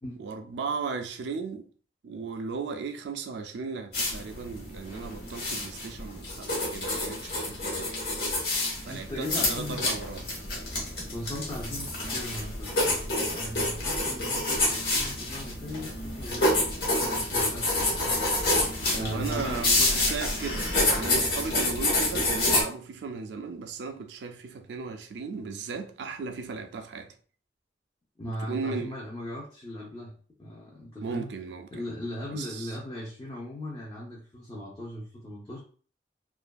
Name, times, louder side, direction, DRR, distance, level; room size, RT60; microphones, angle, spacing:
voice 1, 0.2-1.7 2.0-8.0 8.8-10.3 18.9-27.1 28.3-28.9 31.0-31.8 32.3-32.7, right 5 dB, 70° right, 0.4 m, -36 dB
sound 1, 3.9-22.6, left 2 dB, 60° left, 0.9 m, -28 dB
voice 2, 8.9-9.8 11.1-16.5 16.8-18.2 18.7-19.6 28.2-31.3 31.7-35.6, left 1 dB, 20° left, 0.5 m, -38 dB
2.6 x 2.4 x 2.2 m
head